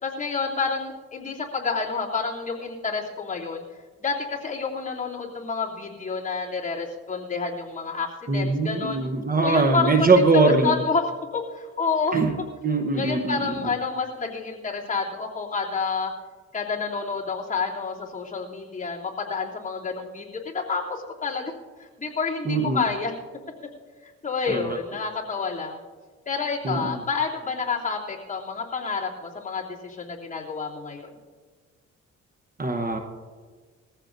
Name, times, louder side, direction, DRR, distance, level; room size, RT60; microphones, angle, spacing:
voice 1, 0.0-3.6 4.0-9.0 9.4-12.2 12.9-16.1 16.5-21.5 22.0-23.1 24.0-25.8 26.3-31.1, left 4 dB, 25° left, -5 dB, 3.0 m, -29 dB
voice 2, 8.3-10.8 12.1-12.4 12.6-13.7 22.5-22.9 24.5-24.8 26.6-27.0 32.6-33.0, right 3 dB, 30° right, 5 dB, 1.1 m, -22 dB
21.0 x 15.0 x 2.7 m, 1.5 s
cardioid pair, 90°, 30 cm